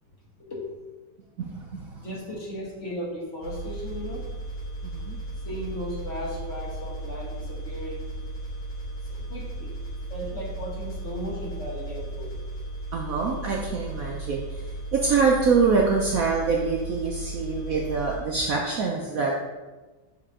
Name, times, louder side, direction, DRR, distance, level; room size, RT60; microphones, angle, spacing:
voice 1, 0.4-0.7 2.0-4.2 5.4-8.1 9.1-9.7 10.1-12.3, equal, 45° left, -3 dB, 1.4 m, -36 dB
voice 2, 1.4-1.9 4.8-5.2 12.9-14.4 14.9-19.3, right 4 dB, 65° right, -1 dB, 0.9 m, -25 dB
sound 1, 3.4-18.2, right 1 dB, 85° left, 2.5 m, -35 dB
6.6 x 4.4 x 3.7 m, 1.2 s
omnidirectional pair, 2.0 m